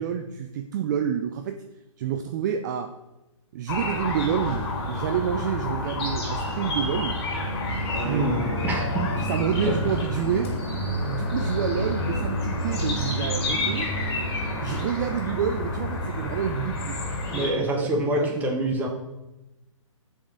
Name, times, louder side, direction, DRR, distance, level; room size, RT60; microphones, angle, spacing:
voice 1, 0.0-1.6 2.0-2.9 3.5-7.2 7.9-10.5 11.0-13.9 14.6-17.9 18.1-18.6, right 8 dB, 35° right, 6 dB, 0.5 m, -29 dB
sound 1, 3.7-17.5, left 1 dB, 50° left, 2.1 m, -29 dB
voice 2, 8.0-9.1 9.6-9.8 17.3-18.9, right 1 dB, 10° right, 1 dB, 1.1 m, -26 dB
7.3 x 4.5 x 4.8 m, 0.98 s
hypercardioid pair, 140°, 17 cm